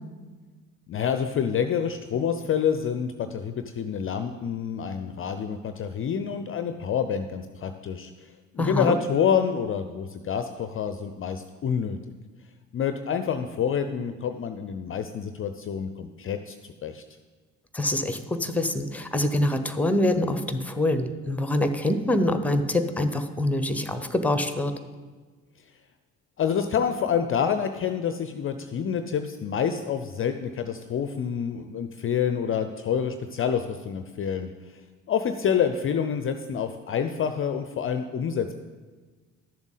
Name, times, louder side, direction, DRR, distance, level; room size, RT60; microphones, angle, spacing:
voice 1, 0.9-12.0 12.7-17.0 26.4-34.8 35.1-38.5, left 7 dB, 35° left, 8 dB, 0.5 m, -27 dB
voice 2, 8.6-8.9 17.7-24.7, left 1 dB, 5° left, 9 dB, 0.8 m, -25 dB
12.0 x 7.1 x 4.0 m, 1.4 s
hypercardioid pair, 55°, 39 cm